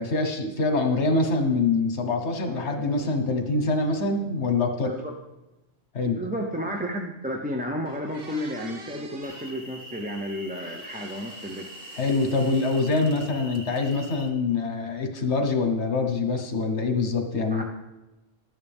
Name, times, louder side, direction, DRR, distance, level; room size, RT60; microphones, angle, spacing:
voice 1, 0.0-4.9 5.9-6.2 12.0-17.6, left 3 dB, 80° left, 5 dB, 1.5 m, -25 dB
sound 1, 2.4-5.4, right 3 dB, 80° right, 1.4 m, -45 dB
voice 2, 6.1-11.7 17.5-17.6, equal, 10° right, 1 dB, 0.6 m, -32 dB
sound 2, 7.4-7.5 7.8-9.6 10.5-13.3 13.6-14.3, right 3 dB, 60° right, 1.2 m, -47 dB
sound 3, 9.2-14.3, left 1 dB, 50° left, 2.5 m, -44 dB
12.5 x 9.7 x 3.5 m, 1.0 s
omnidirectional pair, 1.1 m